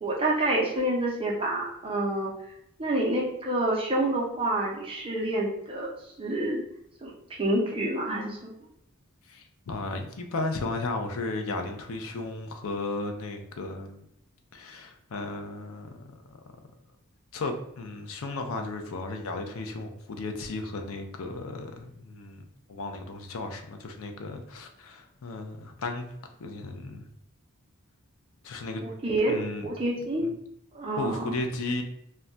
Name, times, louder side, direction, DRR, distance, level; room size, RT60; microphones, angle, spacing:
voice 1, 0.0-2.3 2.8-5.9 6.2-6.6 7.0-8.4 28.8-29.4 29.6-30.3 30.7-31.3, right 1 dB, 25° right, -2 dB, 0.5 m, -28 dB
voice 2, 9.3-14.0 14.5-16.0 16.3-16.4 17.3-26.1 26.4-27.1 28.4-28.8 29.3-29.7 30.2-30.4 31.0-31.8, left 2 dB, 70° left, 5 dB, 0.5 m, -34 dB
2.2 x 2.2 x 3.7 m, 0.77 s
head